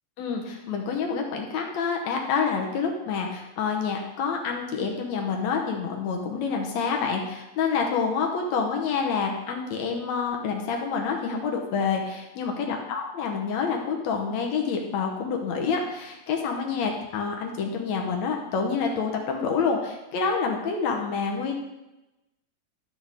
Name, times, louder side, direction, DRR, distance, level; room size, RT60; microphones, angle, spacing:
voice 1, 0.2-21.5, left 5 dB, 70° left, 1 dB, 2.2 m, -27 dB
12.0 x 6.2 x 3.6 m, 0.98 s
omnidirectional pair, 3.5 m